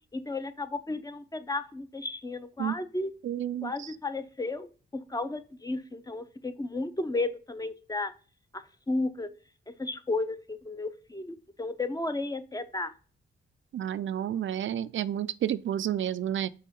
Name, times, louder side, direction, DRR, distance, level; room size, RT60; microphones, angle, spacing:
voice 1, 0.1-3.1 3.6-8.1 8.5-9.3 9.8-12.9, left 2 dB, 15° left, 0.7 m, -33 dB
voice 2, 3.2-3.7 13.7-16.5, right 10 dB, 65° right, 0.4 m, -30 dB
5.5 x 3.7 x 5.3 m
wide cardioid pair, 110°, 21 cm